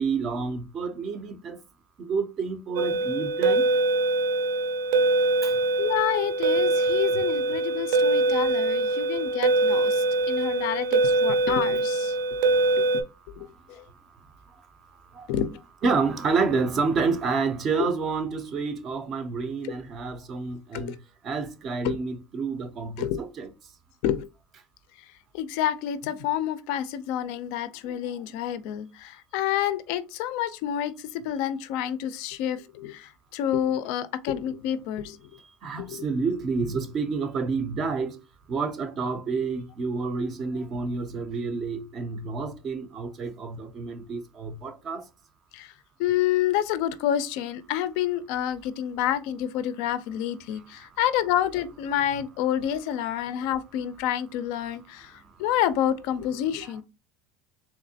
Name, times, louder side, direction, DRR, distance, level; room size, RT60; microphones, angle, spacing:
voice 1, 0.0-1.6 2.0-3.7 5.4-5.6 12.4-12.9 13.4-13.8 15.1-15.3 15.8-21.0 21.2-23.5 27.9-28.0 35.6-38.2 38.5-45.0, right 4 dB, 25° right, 0.4 m, -29 dB
sound 1, 2.8-13.0, right 2 dB, 75° right, 0.6 m, -23 dB
voice 2, 5.8-12.2 12.8-13.8 15.3-15.6 19.6-19.7 20.7-21.0 21.8-22.0 23.0-23.2 24.0-24.3 25.3-35.2 35.8-36.0 45.5-45.7 46.0-56.8, left 11 dB, 55° left, 0.4 m, -28 dB
3.5 x 3.1 x 2.7 m
cardioid pair, 180°, 0 cm